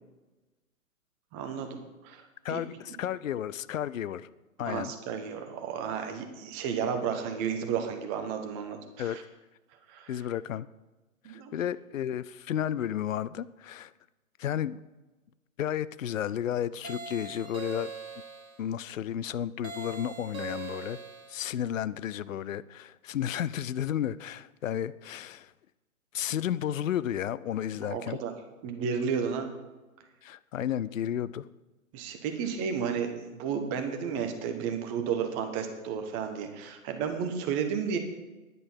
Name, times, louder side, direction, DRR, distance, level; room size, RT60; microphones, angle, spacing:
voice 1, 1.3-2.2 2.5-2.6 4.6-9.2 9.9-10.1 11.2-11.5 27.8-28.3 28.6-29.5 31.9-38.0, right 7 dB, 25° right, 5 dB, 1.2 m, -32 dB
voice 2, 2.4-4.3 4.6-4.9 9.0-9.2 10.1-10.7 11.3-13.9 14.4-14.8 15.6-17.9 18.6-21.0 21.3-25.5 26.1-28.2 30.2-31.5, left 10 dB, 65° left, 18 dB, 0.6 m, -32 dB
sound 1, 16.8-18.6 19.6-21.4, right 6 dB, 70° right, 1.7 m, -41 dB
10.5 x 9.1 x 5.6 m, 1.1 s
figure-of-eight pair, 130°, 43 cm